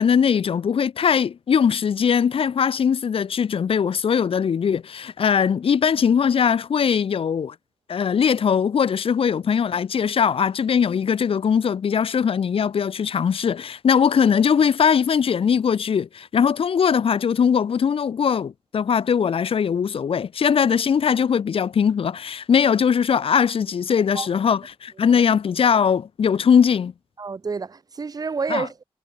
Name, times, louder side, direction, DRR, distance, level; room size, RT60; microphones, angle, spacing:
voice 1, 0.0-7.5 7.9-26.9 28.5-28.6, left 7 dB, 65° left, 0.6 m, -20 dB
voice 2, 27.2-28.8, right 4 dB, 40° right, 0.8 m, -29 dB
wide cardioid pair, 125°, 10 cm